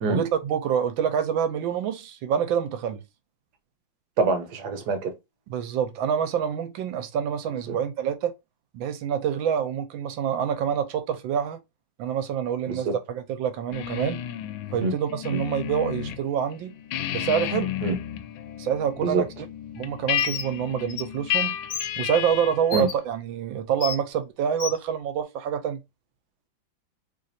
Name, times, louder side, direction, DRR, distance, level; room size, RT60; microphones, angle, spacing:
voice 1, 0.1-3.0 5.5-8.3 8.7-11.6 12.0-14.2 14.7-16.7 17.1-17.7 18.6-19.3 19.7-21.6 22.0-25.8, right 8 dB, 80° right, 1.4 m, -26 dB
voice 2, 4.2-5.1 12.7-12.8 14.8-14.9 15.3-15.4 17.8-18.0 19.0-19.2 22.7-22.9, right 3 dB, 60° right, 1.3 m, -25 dB
sound 1, 13.7-16.2 16.5-22.7, left 11 dB, 85° left, 1.3 m, -32 dB
Bird, 20.2-20.5 20.9-21.0 21.7-21.9 22.7-22.9 23.8-24.0 24.6-24.8, left 7 dB, 65° left, 0.9 m, -31 dB
3.3 x 2.5 x 4.0 m
omnidirectional pair, 2.1 m